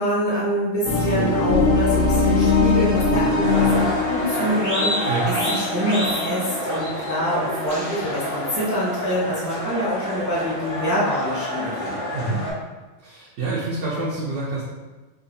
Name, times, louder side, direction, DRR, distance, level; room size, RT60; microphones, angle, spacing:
voice 1, 0.0-12.0, equal, 15° right, -8 dB, 0.7 m, -25 dB
sound 1, 0.8-7.7, left 3 dB, 85° left, 1.0 m, -22 dB
sound 2, 3.4-12.5, equal, 60° left, 1.8 m, -28 dB
sound 3, 7.7-9.6, left 2 dB, 40° left, 0.8 m, -42 dB
voice 2, 12.1-12.4 13.0-14.6, right 3 dB, 70° right, -7 dB, 1.0 m, -27 dB
4.7 x 2.5 x 2.6 m, 1.2 s
omnidirectional pair, 1.4 m